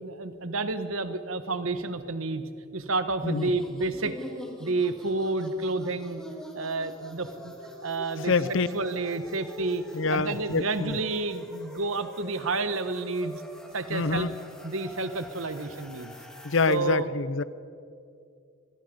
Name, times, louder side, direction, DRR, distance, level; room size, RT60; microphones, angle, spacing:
voice 1, 0.0-4.2 4.6-6.2 6.5-7.5 7.8-13.4 13.7-14.3 14.6-16.1 16.7-17.1, right 3 dB, 75° right, 11 dB, 1.2 m, -30 dB
sound 1, 3.2-16.8, equal, 5° left, 2.0 m, -45 dB
voice 2, 8.3-8.7 9.9-10.9 13.9-14.3 16.4-17.4, left 4 dB, 65° left, 17 dB, 0.7 m, -26 dB
26.5 x 20.0 x 5.3 m, 2.4 s
head